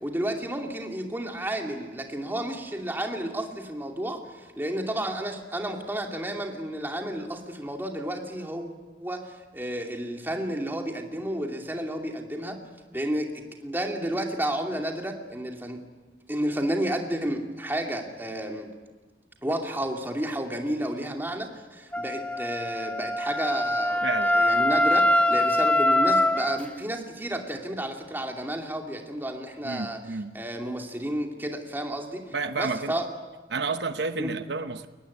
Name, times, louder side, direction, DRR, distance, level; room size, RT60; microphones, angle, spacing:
voice 1, 0.0-8.7 9.0-12.6 12.9-15.8 16.3-18.7 19.4-30.0 30.3-33.1 34.2-34.3, right 1 dB, 10° right, 2.6 m, -31 dB
Wind instrument woodwind instrument, 21.9-26.6, left 1 dB, 10° left, 1.1 m, -23 dB
voice 2, 24.0-24.4 29.6-30.4 32.3-32.9 33.5-34.9, right 4 dB, 80° right, 1.0 m, -30 dB
23.0 x 19.0 x 9.7 m
head